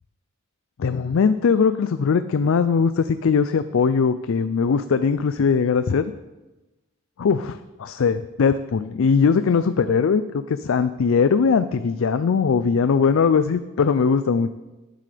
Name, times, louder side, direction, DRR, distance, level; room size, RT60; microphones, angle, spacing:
voice 1, 0.8-6.0 7.2-14.5, left 5 dB, 65° left, 11 dB, 0.4 m, -20 dB
18.5 x 7.6 x 3.4 m, 1.1 s
head